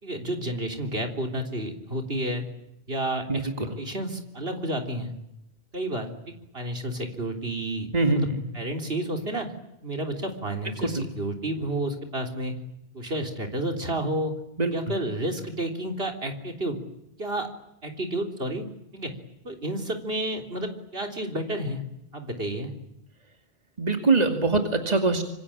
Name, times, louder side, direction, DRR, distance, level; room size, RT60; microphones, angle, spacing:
voice 1, 0.0-2.4 2.9-5.1 5.7-8.3 8.5-9.5 9.8-12.5 12.9-14.4 14.7-16.8 17.2-17.5 17.8-18.6 18.9-19.1 19.4-21.8 22.1-22.7, right 1 dB, 65° right, 4 dB, 3.9 m, -31 dB
voice 2, 7.9-8.4 14.6-14.7 23.8-25.2, right 3 dB, 40° right, 4 dB, 2.7 m, -22 dB
26.0 x 25.0 x 8.7 m, 0.85 s
omnidirectional pair, 1.1 m